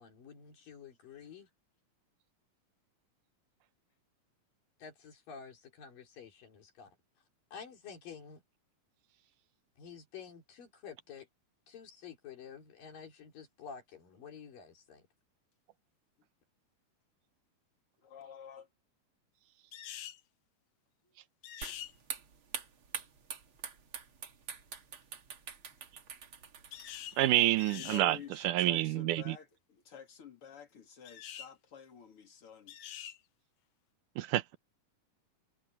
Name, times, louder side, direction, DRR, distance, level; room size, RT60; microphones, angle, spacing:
voice 1, 0.0-1.5 4.8-7.0 7.5-8.4 9.8-11.3 11.7-15.1, left 6 dB, 90° left, 5.5 m, -50 dB
voice 2, 18.0-18.7 21.0-21.1 27.7-32.8, left 6 dB, 45° left, 3.3 m, -50 dB
sound 1, 19.7-20.2 21.4-21.9 26.7-27.2 27.6-28.1 31.0-31.5 32.7-33.2, left 11 dB, 65° left, 2.1 m, -45 dB
sound 2, 21.6-28.2, right 6 dB, 45° right, 2.4 m, -46 dB
voice 3, 27.2-29.4 34.2-34.6, right 15 dB, 75° right, 2.3 m, -28 dB
omnidirectional pair, 3.8 m